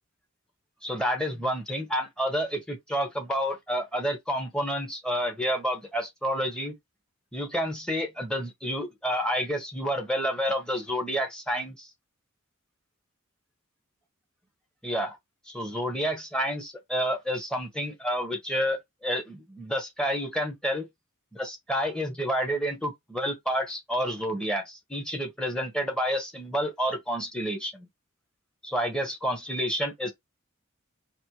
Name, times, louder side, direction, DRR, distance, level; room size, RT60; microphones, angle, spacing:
voice 1, 0.8-6.7 7.3-11.9 14.8-15.2 15.5-20.9 21.3-27.9 28.6-30.1, equal, 5° left, 1.1 m, -29 dB
4.3 x 2.7 x 3.1 m
head